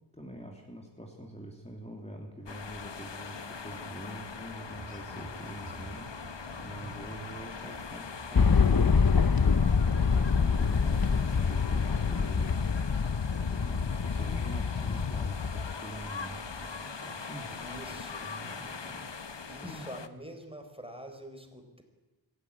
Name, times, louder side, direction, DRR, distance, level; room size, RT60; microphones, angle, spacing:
voice 1, 0.1-13.1 13.4-17.7 18.2-19.2 19.6-19.9, right 1 dB, 15° left, 0 dB, 3.2 m, -45 dB
sound 1, 2.5-20.1, left 5 dB, 70° left, 1.2 m, -42 dB
sound 2, 4.6-10.4 10.8-11.0 11.4-11.5, right 2 dB, 70° right, 2.6 m, -51 dB
sound 3, 8.3-15.7, left 5 dB, 50° left, 0.8 m, -26 dB
voice 2, 17.5-18.3 19.4-21.8, equal, 10° right, 5 dB, 4.4 m, -46 dB
25.0 x 14.5 x 9.9 m, 1.1 s
wide cardioid pair, 50°, 45 cm